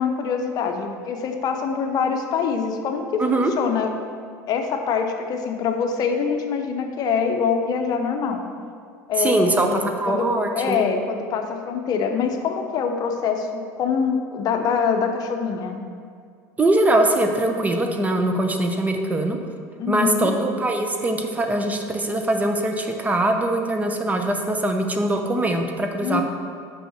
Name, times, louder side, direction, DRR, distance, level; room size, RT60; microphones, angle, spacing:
voice 1, 0.0-3.9 4.5-8.4 9.1-10.3 10.5-15.8 19.8-20.3 26.0-26.2, left 6 dB, 50° left, 5 dB, 0.7 m, -24 dB
voice 2, 3.2-3.5 9.2-10.8 16.6-19.4 19.9-26.2, right 1 dB, 15° right, 4 dB, 0.7 m, -22 dB
5.6 x 5.1 x 6.5 m, 2.2 s
supercardioid pair, 110°, 9 cm